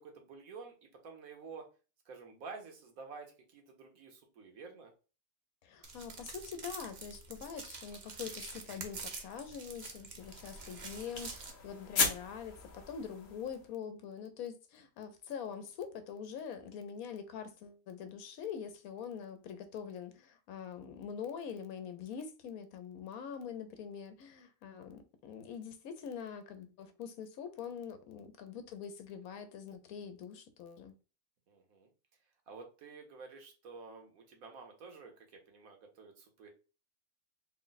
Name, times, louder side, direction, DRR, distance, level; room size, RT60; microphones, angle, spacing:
voice 1, 0.0-1.7 2.0-4.9 31.5-31.9 32.5-36.6, right 4 dB, 80° right, 1.4 m, -50 dB
voice 2, 5.6-30.9, left 7 dB, 85° left, 1.1 m, -44 dB
sound 1, 5.8-11.5, right 4 dB, 45° right, 0.6 m, -47 dB
sound 2, 10.2-13.7, left 5 dB, 55° left, 0.9 m, -37 dB
3.7 x 2.1 x 3.9 m
omnidirectional pair, 1.5 m